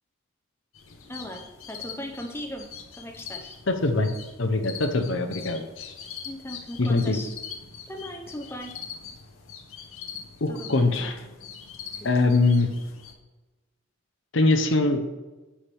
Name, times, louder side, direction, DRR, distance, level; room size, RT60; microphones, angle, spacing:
sound 1, 0.7-13.1, left 7 dB, 85° left, 1.0 m, -43 dB
voice 1, 1.1-1.4 1.7-2.7 2.9-3.6 6.2-7.3 7.9-8.7 10.5-10.9 12.0-12.1, left 1 dB, 10° left, 3 dB, 0.7 m, -38 dB
voice 2, 3.7-4.1 4.4-5.9 6.8-7.2 10.4-11.2 12.0-12.7 14.3-15.0, left 2 dB, 65° left, 7 dB, 0.7 m, -23 dB
10.0 x 5.7 x 3.4 m, 1.2 s
head